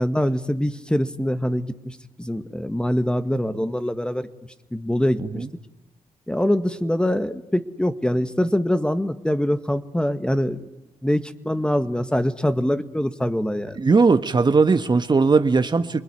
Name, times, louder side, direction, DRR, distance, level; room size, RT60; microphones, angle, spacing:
voice 1, 0.0-4.3 4.7-5.4 6.3-10.6 11.0-13.8, equal, 5° left, 1.8 m, -24 dB
voice 2, 13.7-16.0, right 4 dB, 35° right, 1.5 m, -18 dB
28.5 x 21.5 x 9.8 m
supercardioid pair, 55°, 12 cm